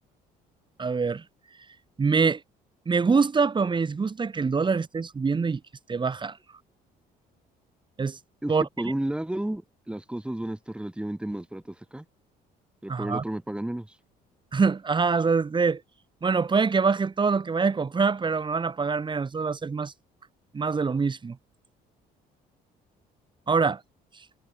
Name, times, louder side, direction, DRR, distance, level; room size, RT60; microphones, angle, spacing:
voice 1, 0.8-1.2 2.0-2.4 2.9-5.6 5.9-6.4 8.0-8.2 8.5-8.6 12.9-13.2 14.5-15.8 16.2-19.9 20.5-21.4 23.5-23.8, right 5 dB, 30° right, 7.1 m, -24 dB
voice 2, 8.4-12.1 12.8-14.0, right 1 dB, 5° right, 6.9 m, -32 dB
cardioid pair, 110°, 17 cm